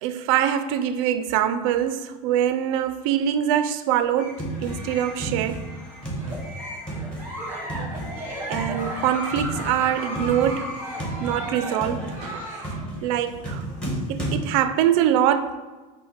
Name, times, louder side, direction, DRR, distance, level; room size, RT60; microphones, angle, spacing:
voice 1, 0.0-5.7 8.5-10.7 11.2-12.7 13.0-13.7 14.1-15.6, right 10 dB, 65° right, 0.4 m, -24 dB
sound 1, 4.2-14.4, right 1 dB, 5° left, 1.1 m, -33 dB
Giggle, 6.1-12.8, equal, 10° right, 0.9 m, -35 dB
5.6 x 2.1 x 4.3 m
supercardioid pair, 135°, 18 cm